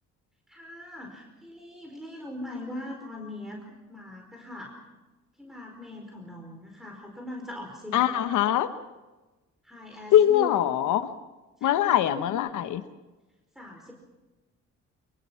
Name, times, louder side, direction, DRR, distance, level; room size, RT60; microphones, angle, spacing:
voice 1, 0.5-4.7 5.4-8.1 9.6-10.9 11.6-12.4 13.5-13.9, left 1 dB, ahead, 0 dB, 4.9 m, -41 dB
voice 2, 7.9-8.7 10.1-11.1 11.6-12.8, left 11 dB, 80° left, 10 dB, 1.2 m, -22 dB
25.0 x 22.5 x 5.8 m, 1.2 s
cardioid pair, 90°, 30 cm